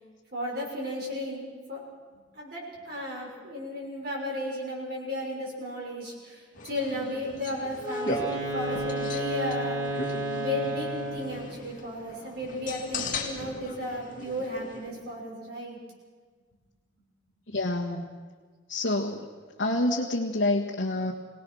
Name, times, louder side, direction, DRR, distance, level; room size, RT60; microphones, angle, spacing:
voice 1, 0.3-1.4 1.7-1.8 2.3-10.0 10.3-15.8, left 1 dB, 55° right, -2 dB, 6.2 m, -34 dB
sound 1, 6.5-14.9, left 3 dB, 45° left, 2.4 m, -38 dB
Wind instrument woodwind instrument, 7.8-11.5, right 1 dB, 20° right, 4.5 m, -31 dB
voice 2, 17.5-18.1 18.7-19.3 19.6-21.1, left 2 dB, 65° left, -4 dB, 1.5 m, -27 dB
23.0 x 18.5 x 6.3 m, 1.5 s
head